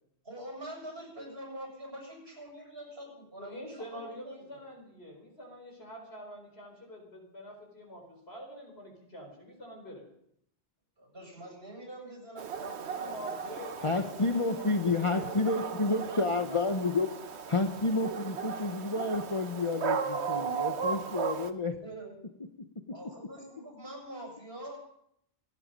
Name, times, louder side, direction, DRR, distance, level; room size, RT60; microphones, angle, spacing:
voice 1, 0.2-4.6 11.0-13.9 21.8-22.2 22.9-24.8, right 1 dB, 65° right, 0 dB, 7.5 m, -45 dB
voice 2, 3.4-10.0 12.9-16.2 16.5-16.6, equal, 70° left, 2 dB, 4.7 m, -46 dB
Dog, 12.4-21.5, right 6 dB, 90° right, 1.3 m, -36 dB
voice 3, 13.8-17.1 17.5-21.8, left 3 dB, 30° left, 5 dB, 1.0 m, -30 dB
26.5 x 9.7 x 5.3 m, 0.73 s
omnidirectional pair, 1.1 m